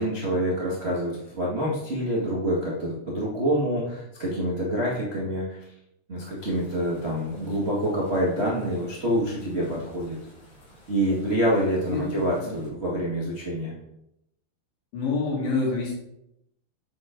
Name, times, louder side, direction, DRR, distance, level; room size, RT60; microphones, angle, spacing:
voice 1, 0.0-5.6 6.1-10.2 10.9-13.7, equal, 35° right, -7 dB, 0.9 m, -26 dB
sound 1, 6.4-12.7, right 1 dB, 50° left, 4.5 m, -47 dB
voice 2, 11.9-12.2 12.4-12.5 14.9-15.9, left 3 dB, 85° left, -3 dB, 4.7 m, -27 dB
9.5 x 6.1 x 3.8 m, 0.83 s
omnidirectional pair, 5.0 m